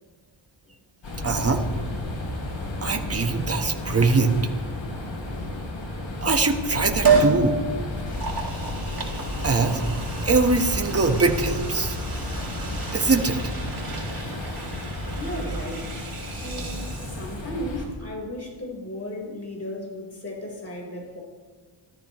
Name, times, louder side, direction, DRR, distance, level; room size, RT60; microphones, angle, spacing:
sound 1, 1.0-17.9, left 1 dB, 70° left, 4.0 m, -32 dB
voice 1, 1.2-1.6 2.8-4.3 6.2-7.6 9.4-9.8 10.2-12.0 12.9-13.4, right 3 dB, 30° right, 4 dB, 1.4 m, -22 dB
Liquid, 7.0-7.4 8.0-17.6 17.9-18.0, right 5 dB, 45° right, 3.9 m, -29 dB
voice 2, 15.1-15.9 16.4-21.2, left 1 dB, 30° left, -1 dB, 4.3 m, -35 dB
28.0 x 13.5 x 3.1 m, 1.5 s
wide cardioid pair, 145°, 47 cm